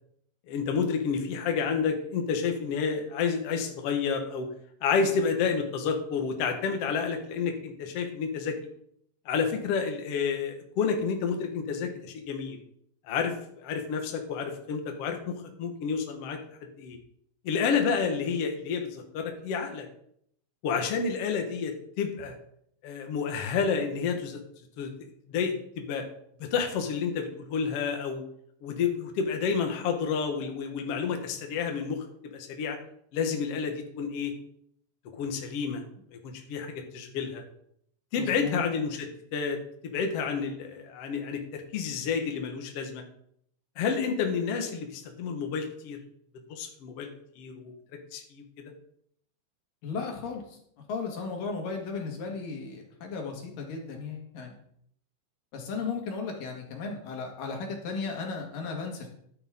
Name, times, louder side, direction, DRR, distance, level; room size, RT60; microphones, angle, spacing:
voice 1, 0.5-4.5 4.8-8.6 9.3-12.6 13.0-16.4 16.8-17.0 17.4-19.9 20.6-22.4 22.8-24.4 24.8-24.9 25.3-26.0 26.4-28.2 28.6-32.0 32.3-32.8 33.1-34.3 35.2-35.8 36.1-37.4 38.1-39.6 39.8-43.0 43.8-46.0 46.5-47.1 47.4-47.7 48.1-48.4, left 6 dB, 55° left, 4 dB, 2.0 m, -30 dB
voice 2, 38.2-38.6 49.8-50.6 50.9-54.6 55.5-59.1, left 4 dB, 80° left, 1 dB, 3.6 m, -35 dB
13.0 x 8.6 x 3.7 m, 0.68 s
omnidirectional pair, 3.8 m